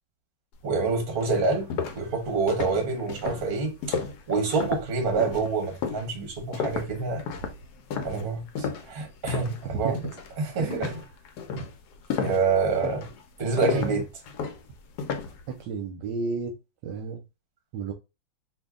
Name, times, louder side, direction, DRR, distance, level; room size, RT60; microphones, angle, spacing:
voice 1, 0.6-1.7 1.9-4.0 4.3-7.2 8.0-9.9 10.4-10.9 12.2-13.0 13.4-14.0, right 4 dB, 40° right, 0.8 m, -27 dB
sound 1, 0.7-0.8 1.2-9.7 9.9-10.3 10.7-15.4, left 6 dB, 70° left, 1.0 m, -33 dB
voice 2, 10.6-10.9 11.6-11.7 12.2-12.4 13.5-14.0 15.5-16.5 16.8-17.2 17.7-17.9, right 5 dB, 75° right, 1.1 m, -32 dB
2.8 x 2.7 x 3.5 m
omnidirectional pair, 2.2 m